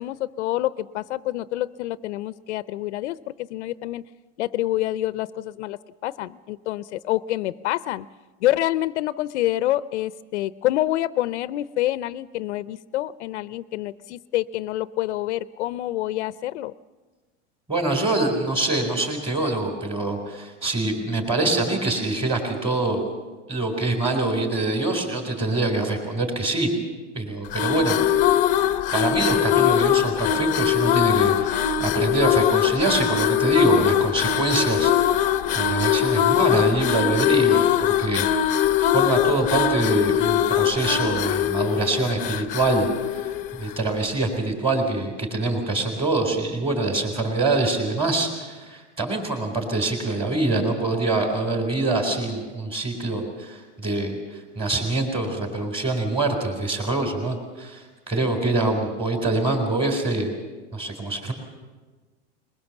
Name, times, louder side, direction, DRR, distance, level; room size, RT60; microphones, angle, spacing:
voice 1, 0.0-4.0 4.4-8.1 8.4-16.7, left 15 dB, 70° left, 16 dB, 0.7 m, -27 dB
voice 2, 17.7-23.0 23.5-26.7 27.2-28.0 28.9-34.9 35.5-37.6 38.0-38.7 38.9-42.9 43.5-54.1 54.6-60.3 60.7-61.3, right 2 dB, 15° right, 4 dB, 3.8 m, -24 dB
sound 1, 27.4-43.9, left 10 dB, 20° left, 0.8 m, -22 dB
21.5 x 21.5 x 7.2 m, 1.3 s
supercardioid pair, 170°, 35 cm